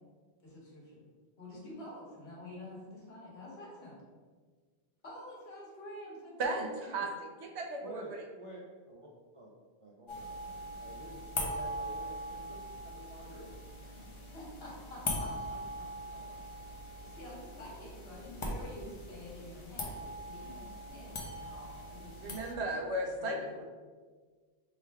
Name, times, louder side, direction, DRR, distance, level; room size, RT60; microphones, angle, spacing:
voice 1, 0.4-1.0 1.4-4.0 5.0-7.0 13.9-15.6 16.3-16.5 17.0-22.8 23.2-23.6, left 1 dB, 70° left, -5 dB, 1.4 m, -49 dB
voice 2, 6.4-8.2 22.2-23.6, right 1 dB, 90° right, 3 dB, 0.9 m, -36 dB
voice 3, 7.8-8.6 8.9-9.1 9.3-9.5 9.8-13.5 16.1-16.5, right 1 dB, 50° right, -4 dB, 0.4 m, -50 dB
sound 1, 10.1-22.5, left 1 dB, 40° left, 0.5 m, -41 dB
3.6 x 2.3 x 4.5 m, 1.5 s
omnidirectional pair, 1.1 m